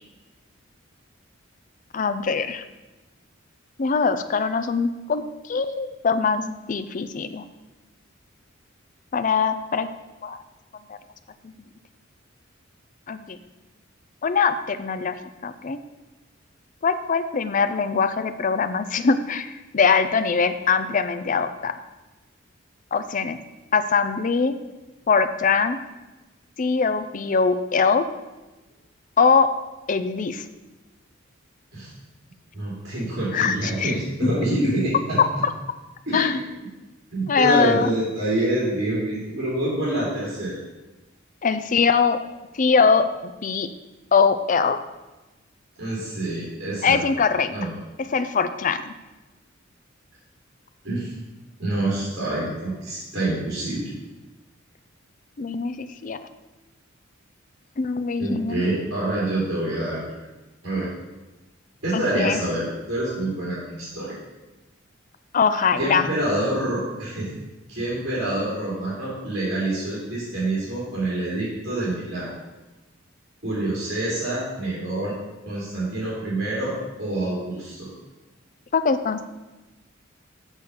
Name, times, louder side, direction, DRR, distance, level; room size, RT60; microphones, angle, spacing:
voice 1, 1.9-2.6 3.8-7.4 9.1-9.9 10.2-10.4 11.4-11.5 13.1-13.4 14.2-15.2 15.4-15.8 16.8-21.7 22.9-23.4 23.7-24.5 25.1-25.8 26.6-28.0 29.2-29.5 29.9-30.4 33.3-33.9 34.2-34.3 35.2-35.3 36.1-36.4 37.3-37.9 41.4-42.2 42.5-43.1 43.4-43.7 44.1-44.8 46.8-47.5 48.0-48.9 55.4-56.2 57.8-58.6 61.9-62.4 65.3-66.1 78.7-79.2, left 5 dB, 40° left, 10 dB, 0.5 m, -22 dB
voice 2, 32.5-35.2 36.1-36.4 37.1-40.6 45.8-47.0 47.5-47.7 50.8-51.1 51.6-53.9 58.2-60.1 60.6-60.9 61.8-64.2 65.8-67.3 67.7-72.3 73.4-75.1 75.4-76.7 77.0-77.9, right 1 dB, 55° right, -8 dB, 3.0 m, -26 dB
6.6 x 6.3 x 5.4 m, 1.1 s
head